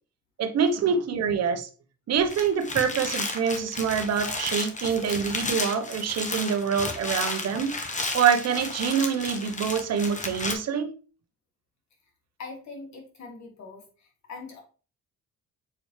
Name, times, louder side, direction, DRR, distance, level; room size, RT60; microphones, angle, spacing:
voice 1, 0.4-1.7 2.1-7.8 8.1-10.9, right 7 dB, 60° right, 1.0 m, -25 dB
sound 1, 2.2-10.5, left 3 dB, 25° left, 1.2 m, -33 dB
voice 2, 12.4-14.6, left 4 dB, 65° left, 2.6 m, -42 dB
7.0 x 4.2 x 3.2 m
cardioid pair, 90°, 30 cm